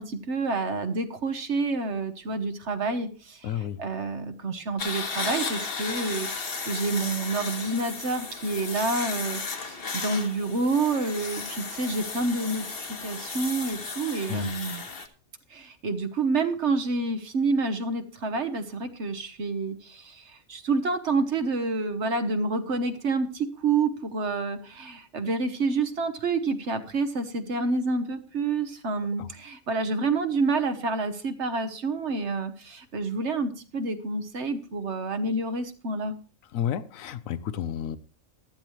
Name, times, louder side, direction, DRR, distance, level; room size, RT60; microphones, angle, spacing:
voice 1, 0.0-14.8 15.5-36.1, right 3 dB, 60° right, 1.3 m, -28 dB
voice 2, 3.4-3.8 14.3-14.5 29.2-29.3 36.5-38.0, left 10 dB, 80° left, 1.1 m, -31 dB
sound 1, 4.8-15.1, left 4 dB, 45° left, 1.4 m, -34 dB
14.5 x 11.5 x 3.1 m
omnidirectional pair, 1.4 m